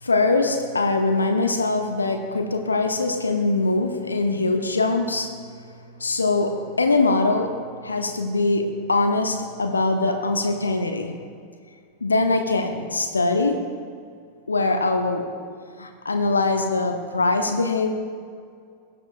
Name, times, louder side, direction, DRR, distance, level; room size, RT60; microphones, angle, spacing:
voice 1, 0.0-5.3 6.0-7.5 7.8-11.1 12.0-13.6 14.5-15.3 15.8-17.9, left 3 dB, 75° left, 5 dB, 0.8 m, -22 dB
19.5 x 7.2 x 2.5 m, 2.2 s
figure-of-eight pair, 90°, 0 cm